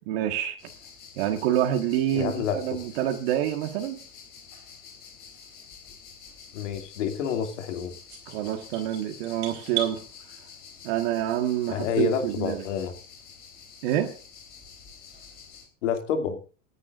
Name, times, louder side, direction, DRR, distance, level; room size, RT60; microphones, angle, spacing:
voice 1, 0.1-0.6 1.2-4.0 8.3-10.0 10.8-12.6 13.8-14.2, right 11 dB, 55° right, 1.6 m, -27 dB
sound 1, 0.6-15.7, left 6 dB, 25° left, 3.3 m, -48 dB
voice 2, 2.1-2.6 6.5-7.9 11.7-12.9 15.8-16.4, left 7 dB, 75° left, 2.6 m, -28 dB
sound 2, 8.1-10.0, right 9 dB, 35° right, 4.6 m, -35 dB
28.5 x 9.9 x 2.6 m
supercardioid pair, 165°, 37 cm